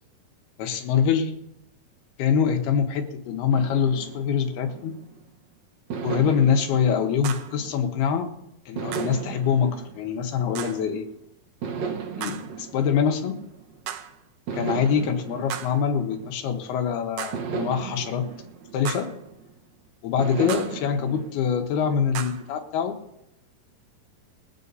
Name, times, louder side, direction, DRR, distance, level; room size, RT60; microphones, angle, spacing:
voice 1, 0.6-1.3 2.2-4.9 6.0-8.3 8.7-11.1 12.2-13.4 14.5-18.3 18.7-19.1 20.0-23.0, left 7 dB, 80° left, 5 dB, 3.2 m, -24 dB
sound 1, 3.5-5.3 5.9-8.2 8.7-11.0 11.6-13.9 14.5-16.7 17.3-19.6 20.2-22.4, right 6 dB, 65° right, 1.9 m, -36 dB
sound 2, 7.2-7.6 8.9-9.2 10.6-10.9 12.2-12.6 13.9-14.2 15.5-15.9 17.2-17.6 18.9-19.2 20.5-20.9 22.1-22.5, right 10 dB, 80° right, 2.6 m, -36 dB
22.0 x 8.2 x 4.1 m, 0.83 s
omnidirectional pair, 4.5 m